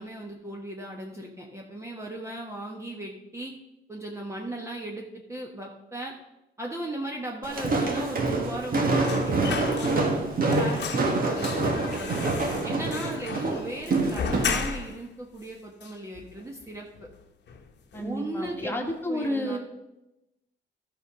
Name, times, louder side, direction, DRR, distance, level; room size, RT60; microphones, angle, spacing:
voice 1, 0.0-3.5 3.9-6.1 6.6-10.1 10.4-12.3 12.6-17.1 18.0-18.8 19.1-19.6, right 1 dB, 15° right, -1 dB, 1.2 m, -37 dB
Walk footsteps, 7.4-14.6, right 3 dB, 45° right, 1.7 m, -26 dB
sound 1, 9.0-10.3 10.5-15.1 15.4-15.5 15.8-16.6 16.9-17.2 17.5-18.2 18.5-18.6, left 6 dB, 60° left, 1.1 m, -35 dB
voice 2, 17.9-19.6, equal, 10° left, 2 dB, 1.8 m, -30 dB
12.5 x 5.5 x 5.0 m, 0.95 s
cardioid pair, 90°, 20 cm